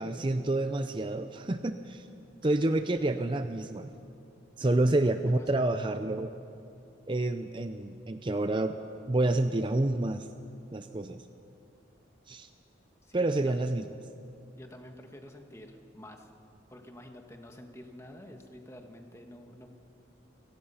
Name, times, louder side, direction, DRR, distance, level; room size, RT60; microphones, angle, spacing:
voice 1, 0.0-2.1 2.4-3.9 4.6-6.3 7.1-8.8 9.1-10.3 10.7-11.2 12.3-12.5 13.1-13.9, right 2 dB, 25° right, 9 dB, 0.5 m, -28 dB
voice 2, 2.4-2.8 4.9-5.7 13.0-13.9 14.5-16.3 16.7-19.7, left 1 dB, 15° left, 4 dB, 1.5 m, -49 dB
29.5 x 18.0 x 5.7 m, 2.6 s
head